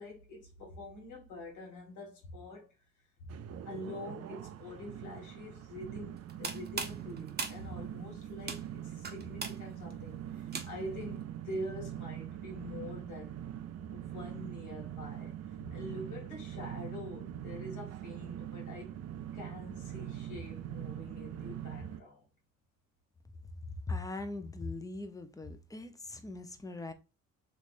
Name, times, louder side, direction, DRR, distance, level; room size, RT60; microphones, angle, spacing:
voice 1, 0.0-2.7 3.2-13.4 13.9-19.0 19.3-22.2, left 1 dB, 80° left, 2.0 m, -45 dB
sound 1, 3.3-22.0, right 11 dB, 55° right, 0.5 m, -43 dB
sound 2, 6.2-11.0, right 4 dB, 35° right, 0.8 m, -41 dB
voice 2, 23.9-26.9, left 3 dB, 10° left, 0.6 m, -40 dB
3.2 x 3.2 x 2.5 m
cardioid pair, 90°, 30 cm